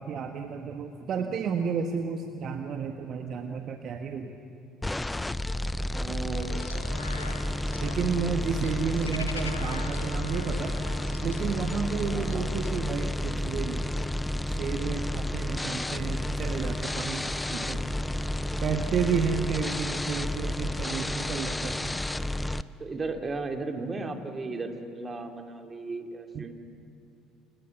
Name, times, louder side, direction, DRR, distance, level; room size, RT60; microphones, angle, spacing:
voice 1, 0.0-4.4 7.8-10.7 11.2-13.8 14.5-17.9 18.6-22.0 26.3-26.4, right 6 dB, 50° right, 5 dB, 1.6 m, -32 dB
voice 2, 1.2-1.5 6.0-7.0 12.1-12.5 22.8-26.5, right 3 dB, 30° right, 4 dB, 3.0 m, -36 dB
sound 1, 4.8-22.6, left 1 dB, 10° left, 0.8 m, -31 dB
sound 2, 6.3-12.8, left 4 dB, 90° left, 1.4 m, -44 dB
29.5 x 29.0 x 6.2 m, 2.4 s
figure-of-eight pair, 60°, 0 cm